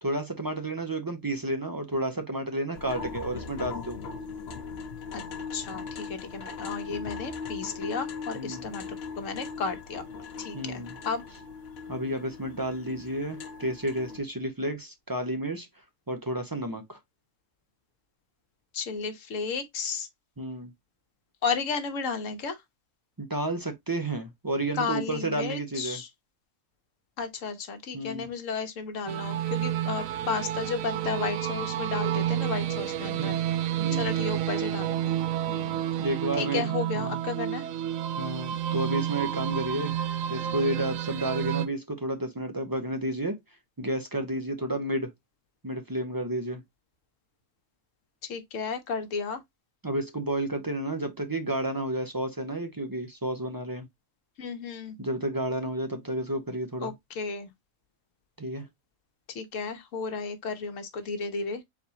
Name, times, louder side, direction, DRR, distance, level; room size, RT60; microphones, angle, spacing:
voice 1, 0.0-4.0 8.3-8.7 10.5-10.9 11.9-15.7 16.1-17.0 20.4-20.7 23.2-26.0 27.9-28.3 33.2-33.3 33.8-34.1 36.0-37.2 38.2-40.0 40.3-43.4 43.8-45.1 45.6-46.6 49.8-53.9 55.0-56.9 58.4-58.7, right 1 dB, 25° right, 0.5 m, -31 dB
sound 1, 2.7-14.2, left 5 dB, 55° left, 1.1 m, -39 dB
voice 2, 5.5-8.8 9.2-10.0 10.4-11.2 18.7-20.1 21.4-22.6 24.7-26.1 27.2-33.4 33.7-35.1 35.5-35.8 36.4-37.7 48.3-49.4 54.4-55.0 56.8-57.5 59.3-61.6, left 5 dB, 70° left, 1.3 m, -33 dB
sound 2, 29.1-41.7, right 11 dB, 80° right, 1.0 m, -30 dB
4.2 x 4.2 x 2.8 m
omnidirectional pair, 1.4 m